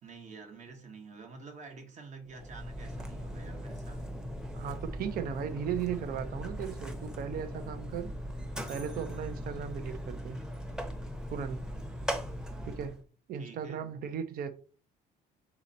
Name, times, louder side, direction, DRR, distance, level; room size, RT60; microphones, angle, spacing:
voice 1, 0.0-4.1 13.3-13.8, right 4 dB, 45° right, 1.0 m, -49 dB
Mechanisms, 2.3-13.0, equal, 5° right, 0.8 m, -39 dB
voice 2, 4.5-8.1 8.7-10.4 11.3-11.6 12.7-13.0 13.3-14.5, right 8 dB, 60° right, 0.7 m, -36 dB
4.1 x 3.0 x 3.9 m
cardioid pair, 110°, 17 cm